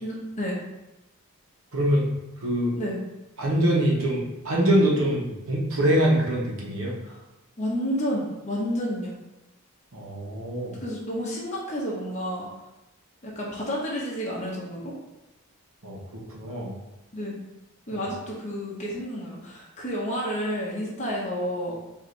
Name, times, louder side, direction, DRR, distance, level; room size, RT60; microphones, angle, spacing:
voice 1, 0.0-0.6 2.8-3.0 7.0-7.2 7.6-9.1 10.7-12.5 13.2-14.9 17.1-17.4 17.9-21.7, equal, 30° left, -5 dB, 0.8 m, -30 dB
voice 2, 1.7-2.1 2.4-2.7 3.4-6.9 9.9-10.8 15.8-16.7, right 1 dB, 70° right, -3 dB, 1.0 m, -24 dB
4.8 x 2.7 x 3.2 m, 1.0 s
head